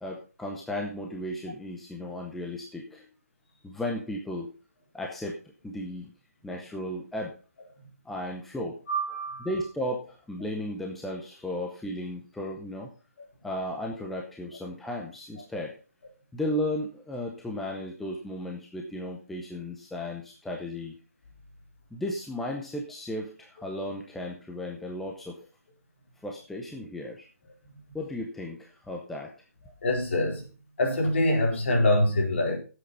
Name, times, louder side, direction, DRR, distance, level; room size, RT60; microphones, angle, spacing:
voice 1, 0.0-3.0 3.6-4.5 4.9-5.4 5.6-6.1 6.4-7.3 8.0-8.8 9.4-12.9 13.4-15.7 16.3-20.9 21.9-25.4 26.2-27.3 27.9-29.3, left 1 dB, ahead, 0.6 m, -35 dB
voice 2, 8.9-9.5 29.8-30.5 30.8-32.6, left 1 dB, 50° left, 4.3 m, -24 dB
10.0 x 7.9 x 5.4 m
hypercardioid pair, 170°, 8 cm